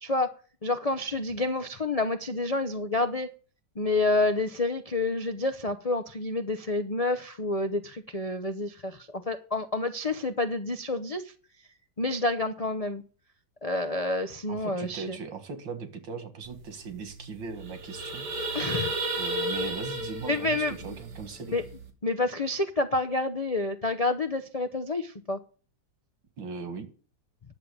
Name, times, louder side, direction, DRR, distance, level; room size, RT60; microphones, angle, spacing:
voice 1, 0.0-0.3 0.6-3.3 3.8-11.3 12.0-13.0 13.6-15.2 18.5-18.9 20.3-21.0 21.5-21.6 22.0-25.4, left 2 dB, 60° left, 0.3 m, -28 dB
voice 2, 14.5-18.3 19.2-21.6 26.4-26.9, right 5 dB, 90° right, 2.4 m, -39 dB
sound 1, 16.6-16.7 16.9-17.1 17.5-21.8, right 1 dB, 65° right, 2.5 m, -33 dB
10.5 x 7.2 x 6.8 m
omnidirectional pair, 2.0 m